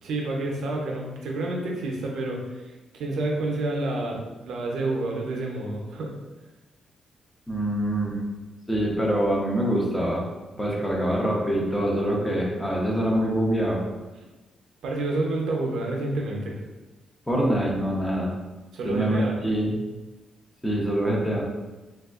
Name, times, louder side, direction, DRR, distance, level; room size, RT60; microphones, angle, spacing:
voice 1, 0.0-6.1 14.8-16.6 18.7-19.4, right 2 dB, 80° right, 0 dB, 0.5 m, -29 dB
voice 2, 7.5-8.2 8.7-10.2 10.5-13.8 17.3-18.3 18.8-19.8 20.6-21.4, right 1 dB, 10° left, -2 dB, 0.6 m, -24 dB
3.4 x 2.3 x 2.3 m, 1.2 s
cardioid pair, 125°, 0 cm